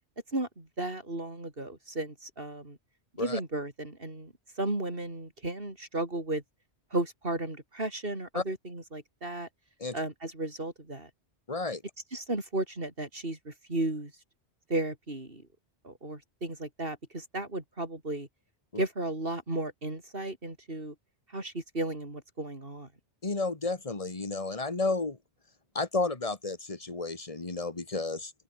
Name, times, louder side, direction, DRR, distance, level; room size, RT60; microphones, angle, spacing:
voice 1, 0.3-2.8 3.2-6.4 6.9-9.5 9.9-11.1 12.1-14.1 14.7-15.4 15.8-18.3 18.8-20.9 21.3-22.9, right 2 dB, 55° right, 5.1 m, -34 dB
voice 2, 11.5-11.8 18.7-18.8 23.2-25.2 25.8-28.3, left 3 dB, 30° left, 2.0 m, -32 dB
omnidirectional pair, 1.2 m